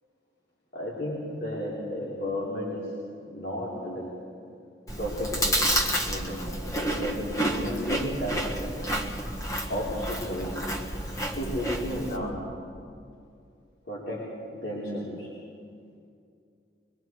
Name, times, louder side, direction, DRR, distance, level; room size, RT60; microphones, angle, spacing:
voice 1, 0.7-2.9 3.2-4.1 4.9-5.6 6.1-9.0 9.7-10.7 11.1-12.5 13.9-15.3, equal, 60° left, -6 dB, 3.8 m, -33 dB
Chewing mastication, 4.9-12.2, equal, 20° left, 1.6 m, -30 dB
24.0 x 24.0 x 4.7 m, 2.4 s
head